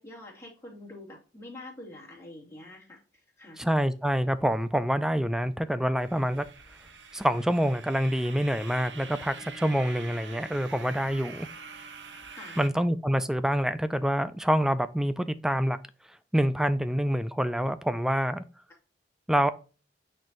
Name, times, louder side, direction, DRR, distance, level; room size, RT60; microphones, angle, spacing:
voice 1, 0.0-3.0 3.4-3.6 12.3-12.6, left 2 dB, 15° left, 2.7 m, -45 dB
voice 2, 3.6-6.4 7.1-11.5 12.6-15.8 16.3-18.4 19.3-19.5, equal, 5° right, 0.3 m, -26 dB
sound 1, 6.0-12.7, right 4 dB, 70° right, 1.0 m, -45 dB
9.1 x 4.5 x 2.5 m
head